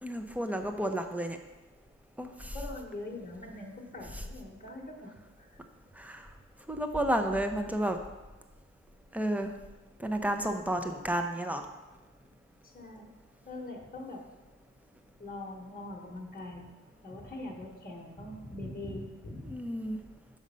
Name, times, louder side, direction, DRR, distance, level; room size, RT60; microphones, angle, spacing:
voice 1, 0.0-1.4 2.2-2.6 6.0-6.2 6.7-8.0 9.1-9.5 10.0-11.7 19.5-20.0, right 1 dB, 5° right, 6 dB, 0.6 m, -31 dB
voice 2, 2.5-5.6 12.6-13.1 13.4-14.2 15.2-16.7 17.0-19.5, left 2 dB, 30° left, -1 dB, 1.1 m, -42 dB
6.3 x 5.1 x 5.5 m, 1.1 s
wide cardioid pair, 100°, 30 cm